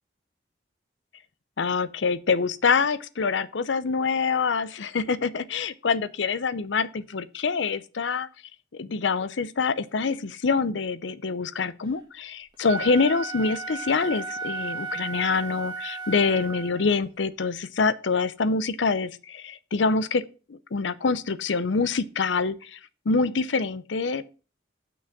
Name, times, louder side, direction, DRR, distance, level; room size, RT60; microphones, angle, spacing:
voice 1, 1.6-8.3 8.8-20.2 20.5-22.8 23.1-24.2, left 4 dB, 80° left, 0.6 m, -25 dB
Wind instrument woodwind instrument, 12.5-16.9, right 5 dB, 25° right, 1.5 m, -35 dB
6.2 x 6.0 x 7.3 m
head